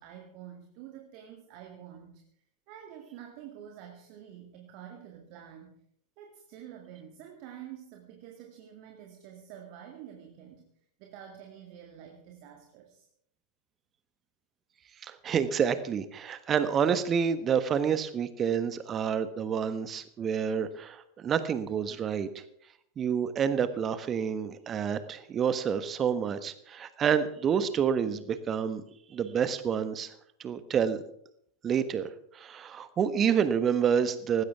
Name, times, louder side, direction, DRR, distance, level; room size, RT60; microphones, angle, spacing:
voice 1, 0.0-2.2 2.7-5.8 6.2-10.7 11.0-13.1, right 10 dB, 45° right, 3 dB, 2.2 m, -48 dB
voice 2, 15.0-22.4 23.0-28.8 29.1-30.1 30.4-31.0 31.6-34.4, right 7 dB, 25° right, 13 dB, 1.3 m, -28 dB
18.5 x 16.0 x 3.6 m, 0.68 s
figure-of-eight pair, 90°, 0 cm